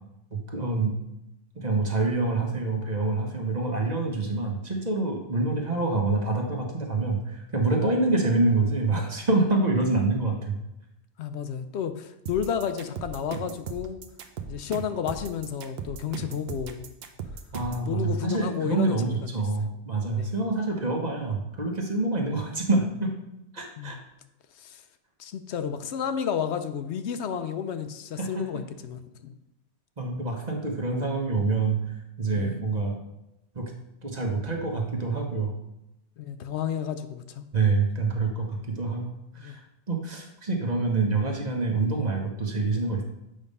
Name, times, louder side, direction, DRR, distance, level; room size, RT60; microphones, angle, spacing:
voice 1, 0.3-1.0 1.5-10.5 17.5-23.1 23.5-24.0 28.2-28.4 30.0-33.0 33.5-33.7 34.0-35.6 37.5-39.6 39.9-43.0, right 3 dB, 40° right, 1 dB, 1.1 m, -26 dB
voice 2, 11.2-14.0 14.5-16.8 17.9-19.2 20.2-20.3 23.8-24.0 24.6-24.8 25.2-29.3 32.4-32.6 36.2-37.4 39.4-39.6, left 8 dB, 80° left, 9 dB, 0.9 m, -31 dB
sound 1, 12.3-17.9, right 6 dB, 65° right, 0.9 m, -37 dB
7.7 x 3.5 x 5.3 m, 0.87 s
omnidirectional pair, 1.1 m